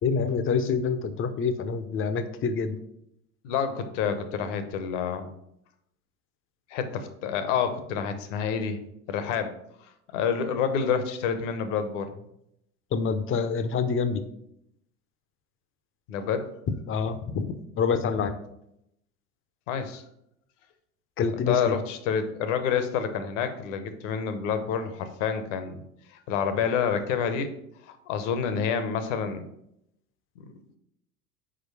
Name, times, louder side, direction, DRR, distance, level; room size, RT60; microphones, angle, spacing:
voice 1, 0.0-2.8 12.9-14.2 16.9-18.4 21.2-21.8, left 5 dB, 30° left, 10 dB, 0.8 m, -27 dB
voice 2, 3.4-5.3 6.7-8.8 9.1-9.5 10.1-12.1 16.1-16.5 19.7-20.0 21.3-25.8 26.3-27.5 27.9-29.4, left 7 dB, 60° left, 9 dB, 1.1 m, -28 dB
6.2 x 5.0 x 4.7 m, 0.78 s
figure-of-eight pair, 75°, 42 cm